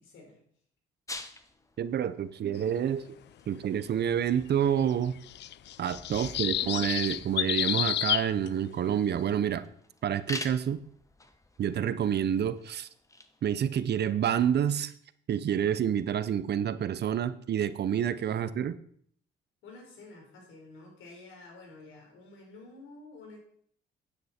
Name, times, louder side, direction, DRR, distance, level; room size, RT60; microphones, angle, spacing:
voice 1, 0.0-0.4 6.1-7.4 18.3-18.5 19.6-23.4, left 3 dB, 80° left, 1 dB, 4.2 m, -50 dB
sound 1, 1.1-13.4, left 2 dB, 15° left, 1.1 m, -47 dB
voice 2, 1.8-3.0 3.5-5.2 5.8-9.7 10.0-10.8 11.6-12.9 13.4-14.9 15.3-18.8, right 9 dB, 55° right, 14 dB, 0.7 m, -28 dB
sound 2, 4.8-8.5, left 13 dB, 60° left, 0.4 m, -30 dB
9.7 x 9.6 x 4.3 m, 0.62 s
cardioid pair, 90°, 20 cm